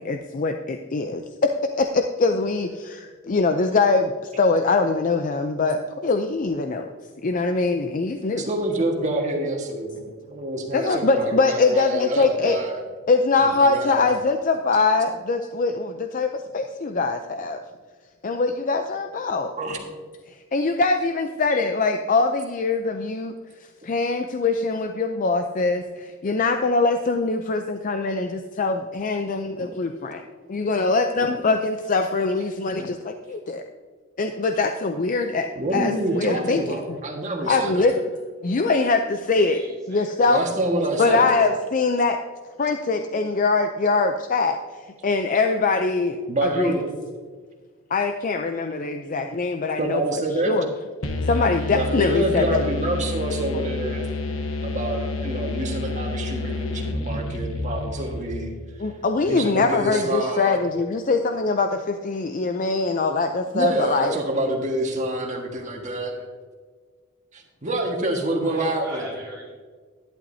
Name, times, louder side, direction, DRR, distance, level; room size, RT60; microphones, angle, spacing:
voice 1, 0.0-1.5 1.8-4.1 4.4-6.9 7.2-8.5 10.7-12.6 13.1-17.6 18.2-19.5 20.3-23.3 23.8-30.2 30.5-33.6 34.2-37.0 37.5-37.9 38.4-39.6 39.9-40.4 41.0-42.2 42.6-46.7 47.9-50.7 51.3-52.6 53.5-53.6 58.8-64.2, left 3 dB, 40° left, 6 dB, 0.5 m, -23 dB
voice 2, 8.4-12.8 13.6-14.1 19.6-19.8 35.5-37.9 40.3-41.3 46.3-46.8 49.8-50.6 51.7-54.1 54.6-58.5 59.2-60.6 63.5-66.1 67.3-69.0, right 1 dB, 35° right, 1 dB, 1.6 m, -27 dB
voice 3, 39.4-40.2 68.4-69.5, right 1 dB, 5° left, -7 dB, 1.8 m, -41 dB
sound 1, 51.0-58.7, left 2 dB, 75° left, 1.1 m, -29 dB
11.5 x 11.0 x 2.7 m, 1.5 s
head